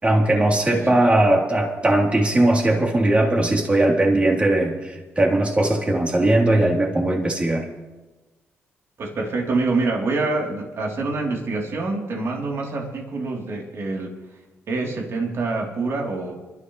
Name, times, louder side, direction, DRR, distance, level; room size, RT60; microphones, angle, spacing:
voice 1, 0.0-7.6, right 1 dB, 25° right, -1 dB, 3.4 m, -19 dB
voice 2, 9.0-14.1 14.7-16.3, right 3 dB, 60° right, -1 dB, 3.4 m, -26 dB
27.0 x 12.5 x 3.2 m, 1.2 s
cardioid pair, 75°, 5 cm